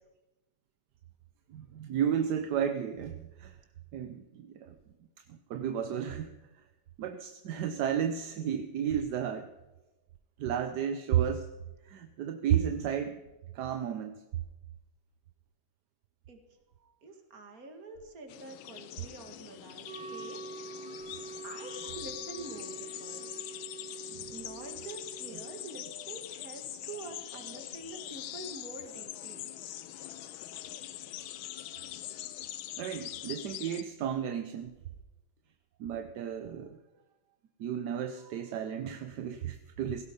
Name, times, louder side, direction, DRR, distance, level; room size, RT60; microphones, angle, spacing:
voice 1, 1.5-3.6 3.9-4.8 5.3-6.3 7.0-9.5 10.4-11.5 11.8-13.2 13.5-14.2 21.1-21.2 24.1-24.3 31.5-31.9 32.3-32.4 32.8-34.7 35.8-36.8 37.6-40.0, right 9 dB, 65° right, 8 dB, 1.2 m, -33 dB
voice 2, 17.0-20.4 21.4-23.4 24.3-29.5, right 3 dB, 45° right, 5 dB, 2.3 m, -46 dB
sound 1, 18.3-33.8, left 13 dB, 80° left, 1.5 m, -43 dB
Wind instrument woodwind instrument, 19.8-25.7, right 4 dB, 30° right, 3.4 m, -46 dB
17.5 x 16.0 x 5.2 m, 1.1 s
omnidirectional pair, 2.2 m